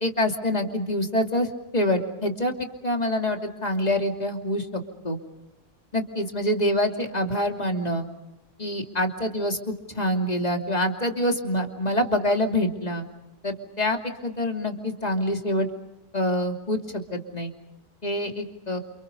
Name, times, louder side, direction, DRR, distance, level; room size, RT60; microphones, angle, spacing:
voice 1, 0.0-5.2 5.9-8.1 8.6-13.1 13.4-15.7 16.1-17.5 18.0-18.8, left 1 dB, 25° left, 3 dB, 2.9 m, -26 dB
29.5 x 28.0 x 5.5 m, 0.93 s
omnidirectional pair, 1.6 m